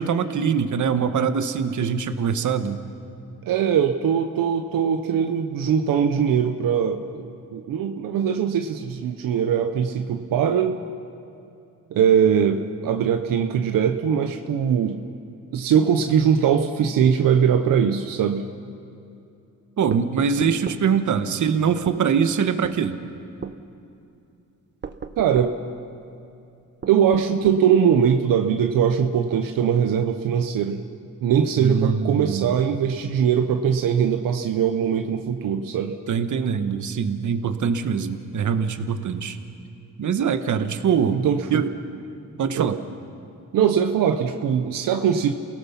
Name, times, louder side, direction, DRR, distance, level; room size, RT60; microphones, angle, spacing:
voice 1, 0.0-2.8 19.8-23.0 31.6-32.6 36.1-39.4 40.0-41.2 41.5-41.7 42.4-42.8, right 7 dB, 60° right, 9 dB, 1.3 m, -23 dB
voice 2, 3.5-10.8 11.9-15.0 15.5-18.5 25.2-25.6 26.9-30.8 31.2-36.0 41.1-41.6 42.5-42.7 43.5-45.3, right 8 dB, 85° right, 6 dB, 0.9 m, -21 dB
sound 1, 19.9-20.9 21.9-22.0 22.6-22.8 23.4-23.6 24.8-25.6 26.8-27.7, right 5 dB, 30° right, 0.8 m, -35 dB
28.5 x 17.5 x 5.9 m, 2.6 s
cardioid pair, 80°, 33 cm